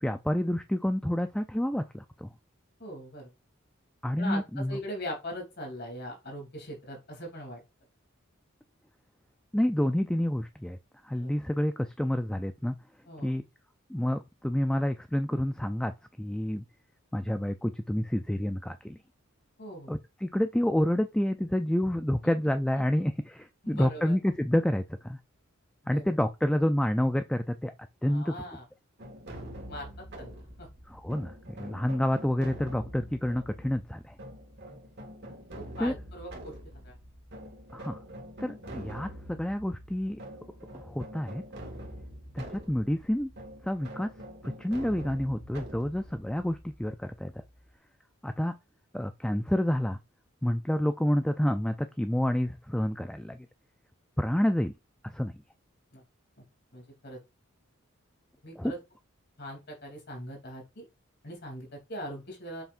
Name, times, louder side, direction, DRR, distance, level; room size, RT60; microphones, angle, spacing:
voice 1, 0.0-2.3 4.0-4.8 9.5-10.8 11.0-12.7 13.2-13.4 13.9-15.9 16.2-16.6 17.1-19.0 19.9-25.2 25.9-27.7 28.0-28.4 30.9-34.2 35.8-35.9 37.7-38.0 38.4-40.2 40.7-41.4 42.3-43.3 43.6-44.1 44.4-47.3 48.2-48.6 48.9-50.0 50.4-53.5 54.2-54.7 55.0-55.3 58.6-58.7, left 1 dB, 5° left, 0.3 m, -29 dB
voice 2, 2.8-3.3 4.2-7.6 11.2-11.3 13.1-13.3 19.6-19.9 23.6-24.1 25.9-26.1 28.0-28.6 29.7-29.9 30.2-30.7 35.6-36.9 55.9-56.0 56.4-56.5 56.7-57.2 58.4-58.8 59.4-60.8 61.2-62.6, equal, 55° left, 2.9 m, -41 dB
sound 1, 29.0-47.7, equal, 55° right, 1.9 m, -45 dB
7.0 x 5.7 x 2.5 m
head